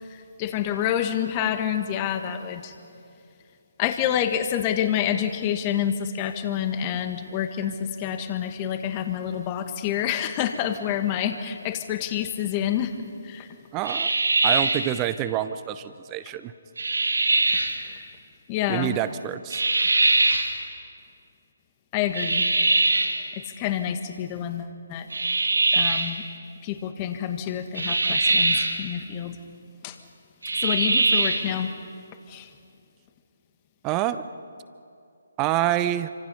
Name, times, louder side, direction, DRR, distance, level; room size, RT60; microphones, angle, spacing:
voice 1, 0.0-2.7 3.8-13.5 17.4-18.1 18.5-19.0 21.9-22.5 23.3-25.1 25.7-26.3 26.6-29.4 29.8-30.0 30.6-31.7 32.3-32.5, left 10 dB, 25° left, 8 dB, 1.6 m, -28 dB
voice 2, 13.7-14.1 14.4-16.5 18.7-19.6 33.8-34.3 35.4-36.1, right 12 dB, 20° right, 13 dB, 0.8 m, -27 dB
sound 1, 13.8-14.9 16.8-17.8 19.5-20.5 22.1-23.2 25.1-26.1 27.8-28.8 30.4-31.5, right 2 dB, 70° right, 2.5 m, -22 dB
28.0 x 25.5 x 5.6 m, 2.5 s
figure-of-eight pair, 140°, 0 cm